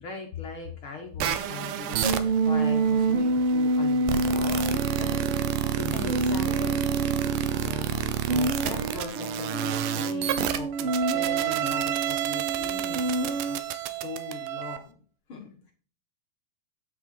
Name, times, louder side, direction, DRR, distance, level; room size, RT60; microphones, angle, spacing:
voice 1, 0.0-2.1 2.4-6.7 7.5-15.0 15.3-15.7, left 5 dB, 50° left, 2 dB, 1.6 m, -40 dB
sound 1, 1.2-14.8, right 12 dB, 85° right, 2.8 m, -30 dB
sound 2, 2.0-7.7 8.3-13.6, right 2 dB, 65° right, 1.3 m, -27 dB
voice 2, 5.9-6.9, left 6 dB, 75° left, 8 dB, 2.3 m, -39 dB
9.2 x 8.1 x 4.4 m, 0.40 s
omnidirectional pair, 4.2 m